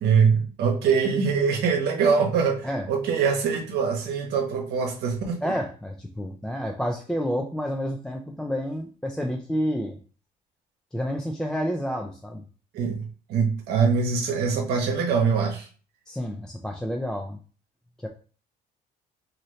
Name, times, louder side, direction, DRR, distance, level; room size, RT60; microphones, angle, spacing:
voice 1, 0.0-5.5 12.7-13.0 13.3-15.7, right 5 dB, 75° right, 1 dB, 0.9 m, -23 dB
voice 2, 5.4-10.0 10.9-12.4 16.1-17.4 18.0-18.1, equal, 5° left, 2 dB, 0.3 m, -29 dB
2.7 x 2.6 x 3.1 m, 0.39 s
cardioid pair, 110°, 17 cm